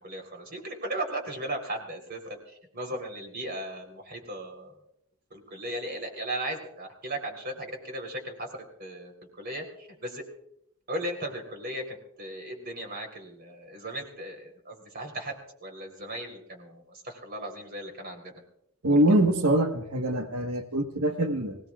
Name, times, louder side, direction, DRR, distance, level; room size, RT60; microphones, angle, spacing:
voice 1, 0.0-4.8 5.3-8.5 8.8-10.2 10.9-15.3 15.6-18.3 18.9-19.0, right 1 dB, 45° right, 4 dB, 3.7 m, -37 dB
voice 2, 18.8-21.6, right 1 dB, 85° right, 4 dB, 1.4 m, -24 dB
25.5 x 17.5 x 2.4 m, 0.73 s
head